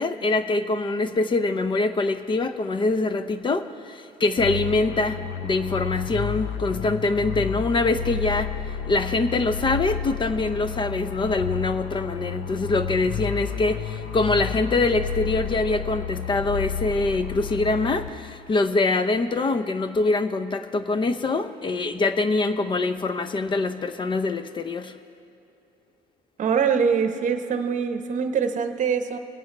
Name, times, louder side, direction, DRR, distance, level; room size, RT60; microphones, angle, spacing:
voice 1, 0.0-8.5 8.9-25.0, left 3 dB, 30° left, 11 dB, 0.6 m, -24 dB
sound 1, 4.4-18.5, left 8 dB, 65° left, 0.7 m, -31 dB
voice 2, 26.4-29.2, right 6 dB, 45° right, 8 dB, 0.9 m, -23 dB
20.5 x 8.9 x 3.3 m, 2.9 s
cardioid pair, 110°, 17 cm